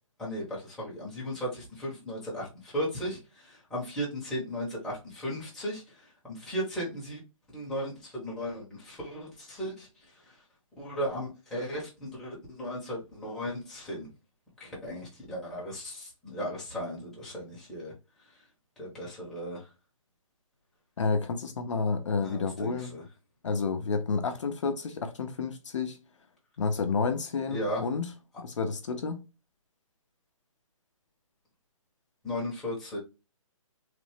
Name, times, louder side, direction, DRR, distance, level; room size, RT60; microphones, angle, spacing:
voice 1, 0.2-7.2 7.5-9.9 10.8-14.1 14.6-17.9 18.8-19.6 22.2-23.0 27.5-27.8 32.2-33.0, equal, 5° left, 0.8 m, -36 dB
voice 2, 21.0-22.9 23.4-26.0 26.6-28.1 28.4-29.2, left 4 dB, 60° left, 0.6 m, -30 dB
3.2 x 2.0 x 3.1 m
hypercardioid pair, 160°, 18 cm